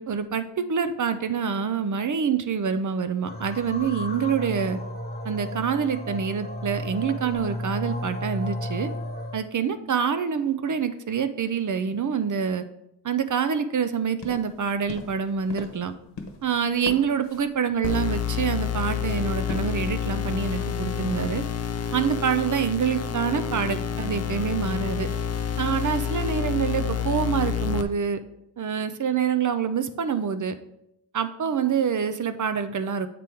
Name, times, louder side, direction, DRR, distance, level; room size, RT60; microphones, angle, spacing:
voice 1, 0.0-4.8 5.2-8.9 9.3-12.6 13.0-15.9 16.4-21.4 21.9-25.1 25.6-28.2 28.6-30.6 31.1-33.1, right 7 dB, 45° right, 10 dB, 0.5 m, -26 dB
sound 1, 3.2-9.4, equal, 20° left, 1.0 m, -33 dB
sound 2, 14.2-19.9, left 3 dB, 65° left, 1.1 m, -42 dB
sound 3, 17.8-27.8, left 8 dB, 40° left, 0.4 m, -28 dB
7.6 x 3.5 x 4.4 m, 0.81 s
wide cardioid pair, 115°, 45 cm